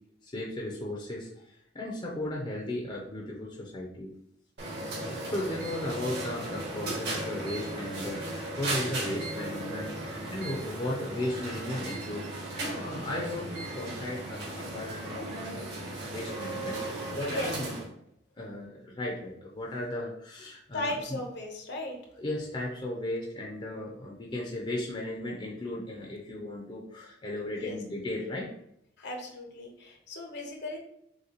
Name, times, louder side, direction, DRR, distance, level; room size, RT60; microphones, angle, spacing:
voice 1, 0.2-4.1 5.0-9.9 10.3-17.7 18.4-21.2 22.2-28.5, left 1 dB, 25° left, -2 dB, 0.6 m, -36 dB
sound 1, 4.6-17.9, right 2 dB, 60° right, 1.6 m, -36 dB
voice 2, 20.7-22.0 27.6-27.8 29.0-30.8, left 1 dB, 60° left, 2 dB, 0.9 m, -36 dB
6.5 x 2.3 x 2.9 m, 0.75 s
head